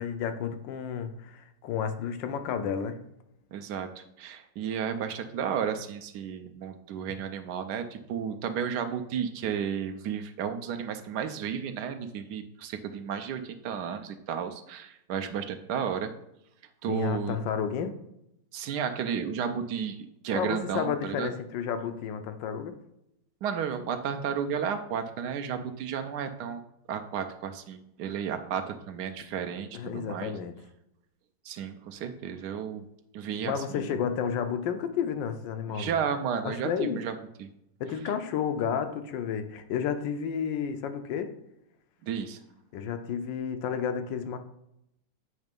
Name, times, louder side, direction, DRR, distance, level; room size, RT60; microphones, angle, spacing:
voice 1, 0.0-3.0 16.9-18.0 20.3-22.8 29.7-30.5 33.4-36.0 36.4-37.0 37.8-41.3 42.7-44.4, left 7 dB, 85° left, 1.4 m, -31 dB
voice 2, 3.5-16.1 16.8-17.4 18.5-21.3 23.4-26.6 26.9-30.3 31.4-32.8 33.1-33.8 35.7-37.1 37.4-37.5 42.0-42.4, right 7 dB, 70° right, 1.1 m, -33 dB
8.1 x 3.2 x 5.2 m
omnidirectional pair, 1.9 m